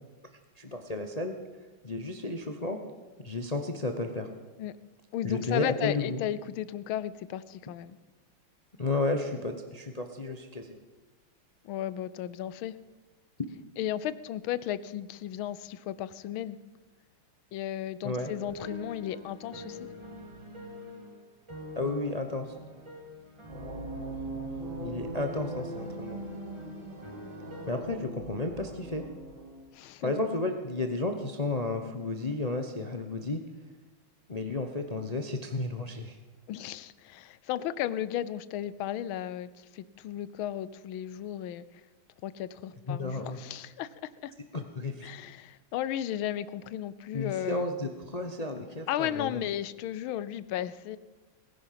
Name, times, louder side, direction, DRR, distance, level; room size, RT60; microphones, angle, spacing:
voice 1, 0.6-1.4 1.8-2.8 3.2-4.3 5.2-6.2 8.8-10.7 18.0-18.3 21.7-22.5 24.8-26.2 27.7-29.0 30.0-33.4 34.3-36.2 42.9-43.4 44.5-45.1 47.1-49.4, left 2 dB, 40° left, 5 dB, 0.5 m, -32 dB
voice 2, 5.1-8.0 11.6-12.8 13.8-16.6 17.5-19.8 29.7-30.1 36.5-41.8 42.2-44.3 45.0-47.7 48.9-51.0, left 11 dB, 80° left, 16 dB, 1.5 m, -35 dB
sound 1, 18.5-27.8, left 1 dB, 15° right, 1.6 m, -46 dB
sound 2, 23.5-29.6, right 2 dB, 65° right, 3.7 m, -40 dB
19.5 x 10.5 x 5.8 m, 1.2 s
omnidirectional pair, 2.3 m